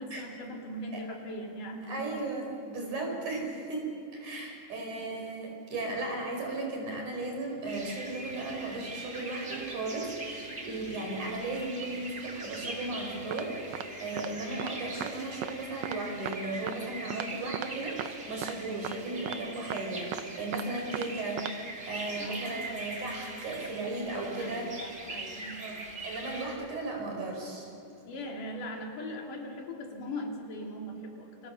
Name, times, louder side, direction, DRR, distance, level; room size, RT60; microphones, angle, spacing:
voice 1, 0.0-2.2 3.1-3.4 4.3-5.3 22.2-22.9 24.4-25.6 28.1-31.5, left 1 dB, 70° left, 1 dB, 4.2 m, -41 dB
voice 2, 1.9-24.7 25.6-27.7, right 2 dB, 60° right, 1 dB, 6.3 m, -36 dB
sound 1, 7.7-26.5, right 2 dB, 25° right, 2.8 m, -42 dB
sound 2, 13.3-13.4 13.7-13.9 14.2-14.3 14.6-14.7 15.0-15.1 15.4-15.5 15.8-16.0 16.3-16.4 16.7-16.8 17.1-17.3 17.5-17.7 18.0-18.1 18.4-18.6 18.8-19.0 19.3-19.4 19.7-19.8 20.1-20.6 20.9-21.1 21.4-21.5, right 12 dB, 80° right, 1.5 m, -36 dB
28.5 x 25.5 x 7.0 m, 2.6 s
omnidirectional pair, 3.9 m